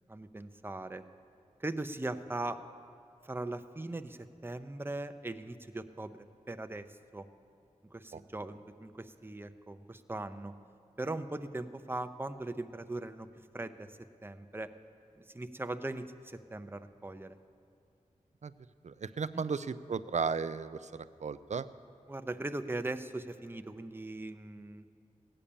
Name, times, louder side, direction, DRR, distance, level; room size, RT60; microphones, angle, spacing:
voice 1, 0.1-1.0 1.6-2.6 3.2-6.2 6.5-6.8 7.1-7.3 7.9-10.5 11.0-13.3 13.5-13.9 14.2-14.7 15.3-17.4 19.3-19.5 22.1-24.8, right 2 dB, 15° right, 9 dB, 0.6 m, -39 dB
voice 2, 18.8-21.7, right 5 dB, 60° right, 14 dB, 0.5 m, -35 dB
16.5 x 8.8 x 7.0 m, 2.5 s
wide cardioid pair, 70°, 13 cm